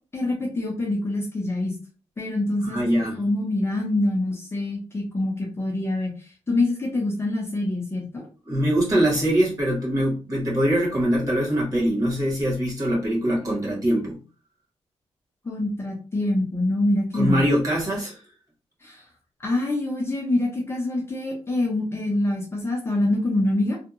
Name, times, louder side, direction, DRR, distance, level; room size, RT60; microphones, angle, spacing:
voice 1, 0.1-1.7 2.2-2.9 3.2-8.3 15.4-17.4 18.8-19.0 19.4-23.8, left 2 dB, 20° left, 0.5 m, -25 dB
voice 2, 2.6-3.2 8.5-14.1 17.1-18.2, equal, 30° right, 1.1 m, -23 dB
2.7 x 2.1 x 2.5 m
wide cardioid pair, 175°, 12 cm